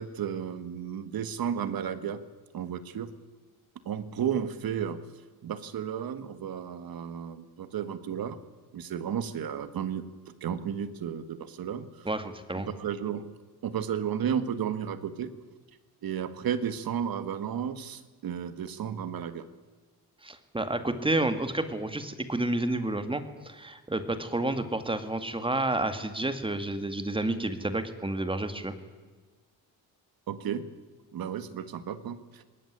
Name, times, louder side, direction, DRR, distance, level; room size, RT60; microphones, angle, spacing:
voice 1, 0.0-2.2 2.5-3.1 3.9-5.0 5.4-8.4 8.7-10.1 10.4-12.1 12.7-13.3 13.6-15.3 16.0-19.5 30.3-30.7 31.1-32.4, right 8 dB, 65° right, 11 dB, 1.8 m, -33 dB
voice 2, 12.0-12.7 20.2-28.7, right 2 dB, 15° right, 9 dB, 2.1 m, -30 dB
20.5 x 18.0 x 9.7 m, 1.4 s
cardioid pair, 110°, 38 cm